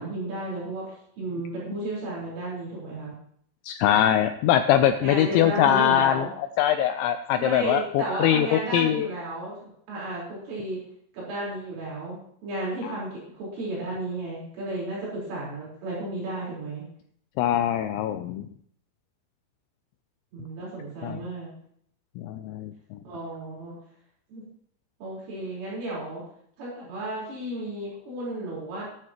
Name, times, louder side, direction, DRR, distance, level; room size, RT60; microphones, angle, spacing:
voice 1, 0.0-3.1 4.8-6.3 7.4-10.8 11.1-16.9 20.3-21.5 23.0-23.8 24.3-24.4 25.0-26.2 26.6-28.8, right 1 dB, 70° right, -6 dB, 7.0 m, -33 dB
voice 2, 3.6-6.3 6.6-9.1 12.8-13.0 17.4-18.5 21.0-21.2 22.2-23.0, left 11 dB, 90° left, 8 dB, 2.6 m, -22 dB
15.5 x 11.5 x 3.0 m, 0.66 s
omnidirectional pair, 5.9 m